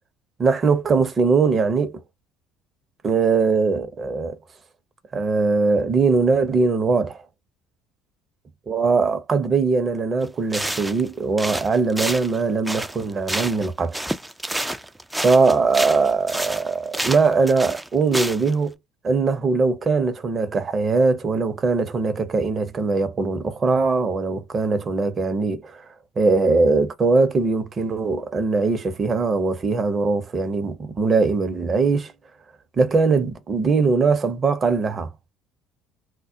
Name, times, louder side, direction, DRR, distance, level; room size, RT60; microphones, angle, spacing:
voice 1, 0.4-2.0 3.0-4.4 5.1-7.2 8.7-14.0 15.2-18.7 19.0-25.8 26.2-32.1 32.8-35.1, right 4 dB, 35° right, 0.7 m, -21 dB
sound 1, 10.2-10.3 10.5-11.1 11.4-13.7 13.9-18.5, right 1 dB, 5° right, 0.4 m, -29 dB
2.3 x 2.1 x 2.7 m
hypercardioid pair, 65°, 0 cm